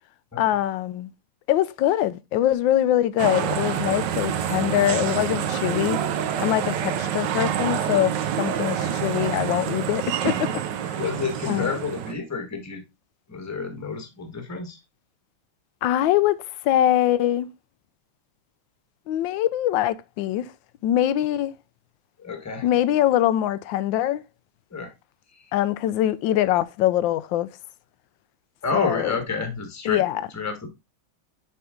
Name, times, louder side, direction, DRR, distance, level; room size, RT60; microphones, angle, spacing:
voice 1, 0.4-1.1 1.5-6.0 6.4-10.5 10.8-11.0 11.5-11.7 15.8-17.5 19.1-20.5 20.8-21.5 22.6-24.2 25.5-27.5 28.7-29.2 29.8-30.3, left 12 dB, 75° left, 1.2 m, -23 dB
sound 1, 3.2-12.1, right 9 dB, 70° right, 1.2 m, -27 dB
voice 2, 11.0-12.8 13.3-14.8 22.2-22.6 24.7-24.9 25.4-25.5 28.6-30.0 30.3-30.7, left 4 dB, 10° left, 1.1 m, -29 dB
6.9 x 4.7 x 3.6 m
omnidirectional pair, 2.3 m